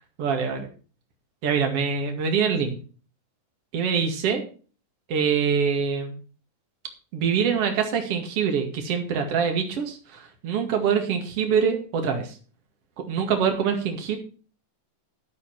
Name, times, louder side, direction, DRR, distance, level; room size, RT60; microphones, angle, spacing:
voice 1, 0.2-0.7 1.4-2.7 3.7-4.4 5.1-6.2 7.1-12.3 13.1-14.2, right 6 dB, 45° right, 4 dB, 2.8 m, -24 dB
12.0 x 8.2 x 4.7 m, 0.39 s
omnidirectional pair, 4.1 m